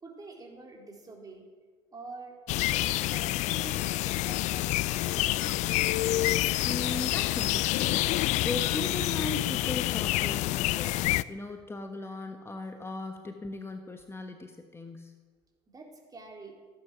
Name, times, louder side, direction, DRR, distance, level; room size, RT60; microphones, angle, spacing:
voice 1, 0.0-1.5 1.9-2.4 2.7-5.8 11.3-11.6 12.1-12.3 12.6-12.8 15.7-16.6, right 3 dB, 30° right, 1 dB, 3.8 m, -47 dB
sound 1, 2.5-11.2, left 16 dB, 65° left, 0.4 m, -28 dB
voice 2, 6.6-8.1 8.4-15.1, left 2 dB, 20° left, 5 dB, 1.2 m, -38 dB
15.5 x 10.0 x 6.2 m, 1.5 s
supercardioid pair, 85°, 13 cm